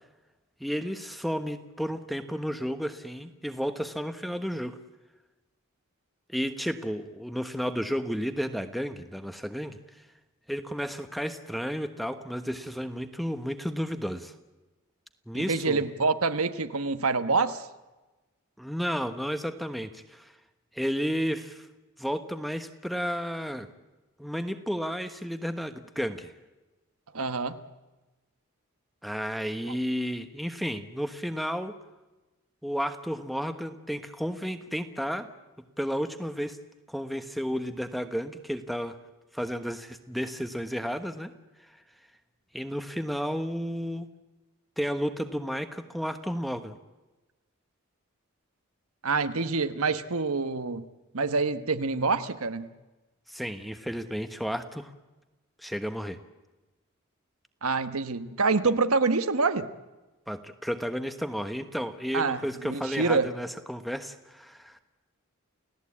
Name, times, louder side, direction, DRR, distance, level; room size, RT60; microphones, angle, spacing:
voice 1, 0.6-4.8 6.3-9.8 10.5-14.3 15.3-15.8 18.6-20.3 20.7-21.7 22.0-23.7 24.2-26.3 29.0-31.7 32.6-35.3 35.8-36.6 36.9-39.0 39.3-41.3 42.5-44.1 44.8-46.8 53.3-54.9 55.6-56.2 60.3-64.8, equal, ahead, 9 dB, 1.1 m, -32 dB
voice 2, 15.3-17.7 27.1-27.6 29.7-29.8 49.0-50.9 51.1-52.7 57.6-59.7 62.1-63.3, right 4 dB, 85° right, 10 dB, 1.2 m, -26 dB
29.5 x 16.5 x 8.6 m, 1.1 s
head